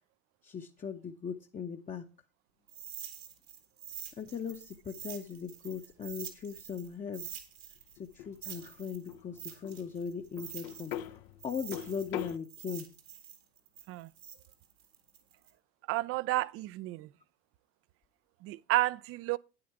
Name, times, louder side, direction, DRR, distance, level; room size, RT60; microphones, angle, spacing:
voice 1, 0.4-2.0 4.2-7.4 8.0-11.2 11.4-12.9, left 6 dB, 25° left, 0.9 m, -39 dB
sound 1, 2.7-6.9 7.1-11.1 11.4-15.5, right 9 dB, 85° right, 2.4 m, -46 dB
sound 2, 3.9-12.4, left 11 dB, 60° left, 0.7 m, -45 dB
voice 2, 15.9-17.1 18.4-19.4, right 17 dB, 45° right, 0.5 m, -31 dB
9.5 x 8.8 x 4.8 m
hypercardioid pair, 70°, 30 cm